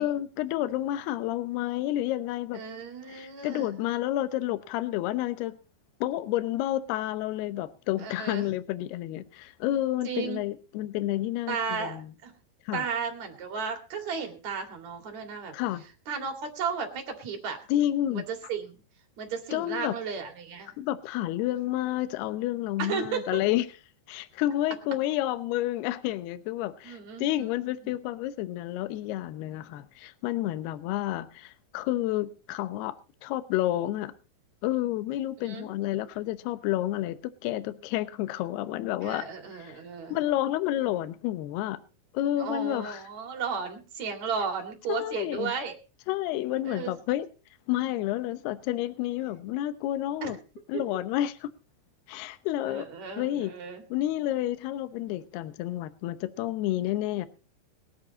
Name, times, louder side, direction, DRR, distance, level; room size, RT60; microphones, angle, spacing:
voice 1, 0.0-2.6 3.1-5.6 6.0-12.1 12.7-12.8 15.5-15.8 17.7-18.2 19.5-19.9 20.8-23.7 24.1-34.1 34.6-39.3 39.6-39.7 40.1-41.8 42.1-43.0 44.9-45.5 46.1-47.3 47.7-50.4 50.7-51.5 52.1-52.9 53.2-53.5 53.9-57.3, left 14 dB, 80° left, 2.3 m, -30 dB
voice 2, 2.5-3.7 8.0-8.4 10.0-10.4 11.5-12.3 12.7-15.5 16.1-17.6 18.1-18.8 19.2-20.8 22.8-23.4 26.8-27.5 35.4-35.7 39.0-40.2 42.4-45.7 46.6-46.9 50.2-50.3 50.7-50.8 52.6-53.8, right 6 dB, 45° right, 2.7 m, -34 dB
21.5 x 9.0 x 4.1 m
omnidirectional pair, 6.0 m